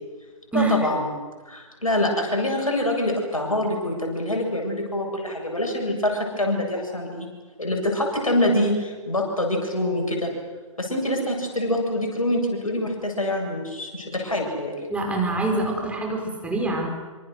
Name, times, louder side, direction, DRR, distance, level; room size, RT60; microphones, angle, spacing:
voice 1, 0.5-1.1 1.4-7.3 7.6-10.3 10.8-14.7, left 1 dB, 85° left, 1 dB, 7.8 m, -25 dB
voice 2, 14.9-16.9, right 2 dB, 5° right, 1 dB, 4.9 m, -25 dB
26.5 x 25.5 x 6.6 m, 1.3 s
figure-of-eight pair, 115°, 17 cm